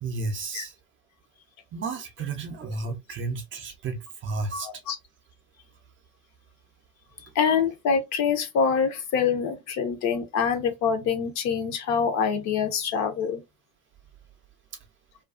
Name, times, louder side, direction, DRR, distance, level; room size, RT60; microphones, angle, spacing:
voice 1, 0.0-0.8 1.7-4.7, right 3 dB, 30° right, 0.6 m, -32 dB
voice 2, 4.6-5.0 7.3-13.4, left 6 dB, 40° left, 0.6 m, -25 dB
2.5 x 2.3 x 2.3 m
hypercardioid pair, 80°, 43 cm